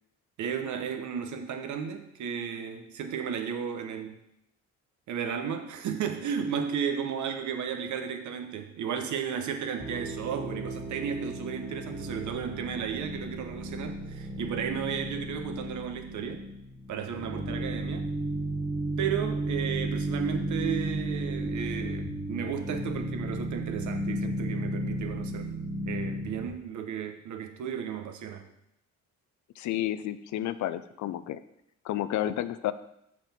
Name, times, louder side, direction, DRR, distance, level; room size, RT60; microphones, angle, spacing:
voice 1, 0.4-4.2 5.1-16.5 16.9-18.1 19.0-25.5 25.8-28.4, right 7 dB, 70° right, 6 dB, 1.0 m, -34 dB
sound 1, 9.8-26.5, right 1 dB, 15° right, 1.0 m, -34 dB
voice 2, 29.6-31.4 31.8-32.7, left 12 dB, 70° left, 13 dB, 0.5 m, -31 dB
6.2 x 6.0 x 4.3 m, 0.79 s
cardioid pair, 90°, 30 cm